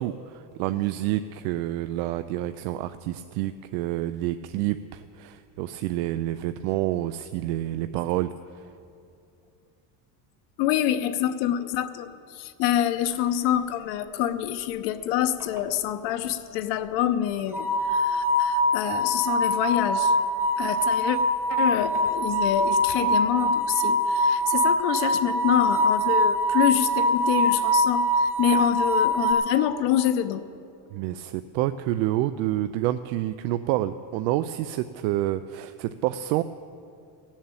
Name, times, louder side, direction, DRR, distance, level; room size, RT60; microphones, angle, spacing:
voice 1, 0.0-8.3 30.9-36.4, right 14 dB, 75° right, 11 dB, 0.6 m, -28 dB
voice 2, 10.6-20.1 20.6-21.2 21.5-30.4, left 11 dB, 60° left, 11 dB, 0.8 m, -26 dB
sound 1, 15.4-15.6 17.5-29.3, equal, 5° right, 0.5 m, -23 dB
16.5 x 7.4 x 8.9 m, 2.5 s
cardioid pair, 170°, 50 cm